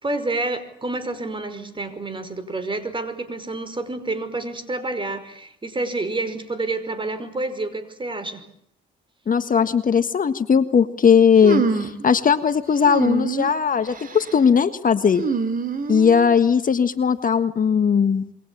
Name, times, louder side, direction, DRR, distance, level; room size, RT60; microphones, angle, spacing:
voice 1, 0.0-8.4, right 2 dB, 25° right, 12 dB, 5.3 m, -28 dB
voice 2, 9.3-15.2 15.9-18.3, left 6 dB, 45° left, 10 dB, 1.6 m, -18 dB
sound 1, 11.4-12.0 12.9-13.5 13.9-14.3 15.1-16.3, right 5 dB, 45° right, 3.2 m, -25 dB
27.5 x 23.5 x 8.7 m, 0.71 s
cardioid pair, 90°, 20 cm